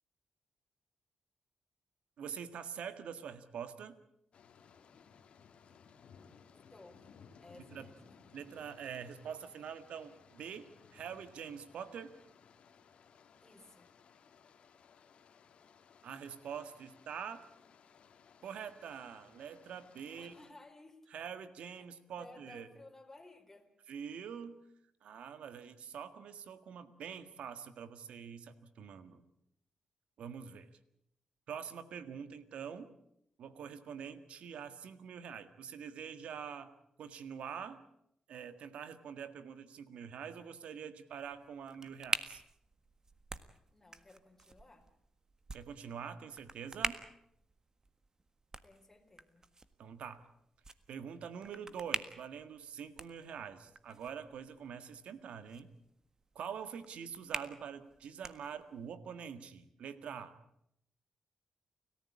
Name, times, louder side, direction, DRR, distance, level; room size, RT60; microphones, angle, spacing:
voice 1, 2.2-3.9 7.5-7.9 8.3-12.1 16.0-17.4 18.4-20.4 21.1-22.7 23.9-24.6 25.0-29.2 30.2-30.7 31.5-32.9 33.4-36.7 37.0-37.8 38.3-42.4 45.5-47.0 49.8-50.2 50.9-55.7 56.3-60.3, right 7 dB, 80° right, 12 dB, 1.7 m, -45 dB
sound 1, 4.3-20.5, left 6 dB, 70° left, 2.2 m, -61 dB
voice 2, 6.7-7.1 7.4-8.2 13.4-13.9 20.1-21.0 21.8-21.9 22.1-23.7 43.7-44.9 48.6-49.5, left 2 dB, 15° left, 0 dB, 4.6 m, -57 dB
sound 2, 41.2-58.9, right 3 dB, 30° right, 1.6 m, -46 dB
29.5 x 14.5 x 8.6 m, 0.76 s
cardioid pair, 65°, 2 cm